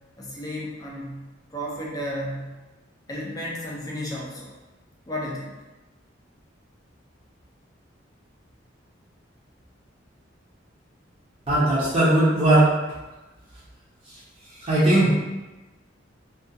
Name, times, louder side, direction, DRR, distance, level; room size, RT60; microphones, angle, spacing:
voice 1, 0.2-1.2 1.5-2.5 3.1-4.6 5.1-5.5, equal, 20° left, -4 dB, 0.5 m, -33 dB
voice 2, 11.5-12.7 14.6-15.1, right 1 dB, 30° right, -11 dB, 0.6 m, -18 dB
2.3 x 2.3 x 2.6 m, 1.1 s
head